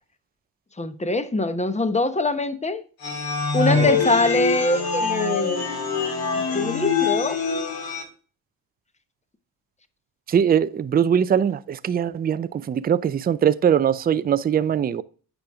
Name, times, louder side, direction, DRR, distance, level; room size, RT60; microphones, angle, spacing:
voice 1, 0.8-2.8 3.5-5.7 6.4-7.4, left 2 dB, 15° left, 0.9 m, -23 dB
sound 1, 3.0-8.0, left 4 dB, 50° left, 2.4 m, -24 dB
voice 2, 10.3-15.0, right 8 dB, 20° right, 0.4 m, -21 dB
8.9 x 5.3 x 3.5 m
supercardioid pair, 75°, 46 cm